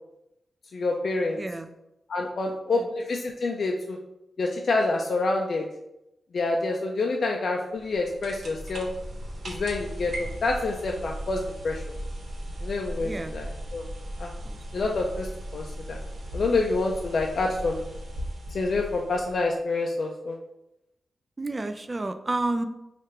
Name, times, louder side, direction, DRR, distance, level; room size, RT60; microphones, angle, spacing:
voice 1, 0.7-1.4 2.1-4.0 4.4-5.7 6.3-8.9 9.5-11.8 12.6-13.9 14.2-14.3 14.7-15.3 15.5-16.0 16.3-17.9 18.5-20.4, left 3 dB, 65° left, 1 dB, 0.4 m, -27 dB
voice 2, 1.4-1.7 2.7-2.9 13.0-13.4 14.4-14.6 21.4-22.6, right 2 dB, 30° right, 9 dB, 0.3 m, -30 dB
sound 1, 7.8-19.6, equal, 75° right, 0.8 m, -37 dB
3.1 x 2.4 x 4.4 m, 0.88 s
cardioid pair, 80°, 0 cm